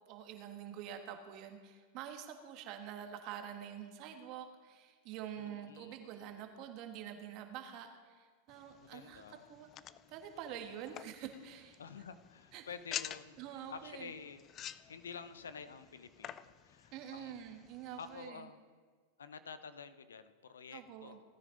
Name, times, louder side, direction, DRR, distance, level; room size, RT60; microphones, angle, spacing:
voice 1, 0.1-9.2 9.5-9.7 10.1-11.8 12.5-12.6 13.4-14.1 16.9-18.5 20.7-21.2, right 9 dB, 50° right, 5 dB, 1.5 m, -47 dB
voice 2, 5.3-6.3 8.8-9.5 11.8-17.3 18.0-18.6 19.2-21.2, left 6 dB, 90° left, 12 dB, 0.7 m, -50 dB
sound 1, 8.5-18.3, left 10 dB, 35° left, 0.4 m, -50 dB
17.0 x 9.6 x 3.9 m, 1.5 s
hypercardioid pair, 110°, 0 cm